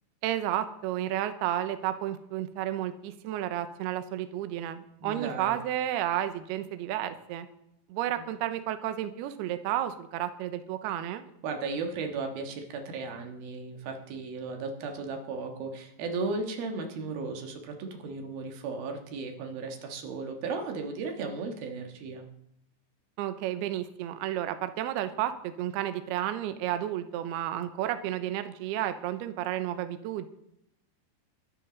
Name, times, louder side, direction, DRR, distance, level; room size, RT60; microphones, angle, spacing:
voice 1, 0.2-7.5 7.9-11.2 23.2-30.3, right 12 dB, 80° right, 9 dB, 2.4 m, -32 dB
voice 2, 5.0-5.6 8.2-8.3 11.4-22.3, right 4 dB, 60° right, 4 dB, 2.8 m, -35 dB
22.0 x 11.0 x 4.0 m, 0.79 s
omnidirectional pair, 5.6 m